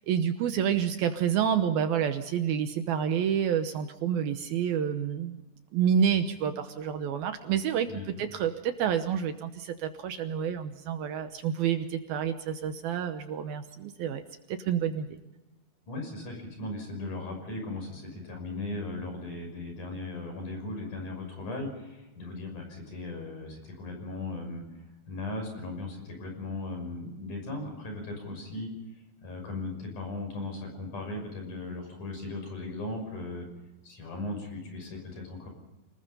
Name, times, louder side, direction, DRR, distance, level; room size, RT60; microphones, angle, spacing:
voice 1, 0.1-5.4 5.7-7.9 8.2-14.2 14.5-15.1, right 8 dB, 70° right, 8 dB, 2.6 m, -28 dB
voice 2, 15.9-28.7 29.2-33.5 33.8-35.5, left 2 dB, 50° left, 3 dB, 7.4 m, -37 dB
28.5 x 20.0 x 5.5 m, 0.98 s
omnidirectional pair, 4.8 m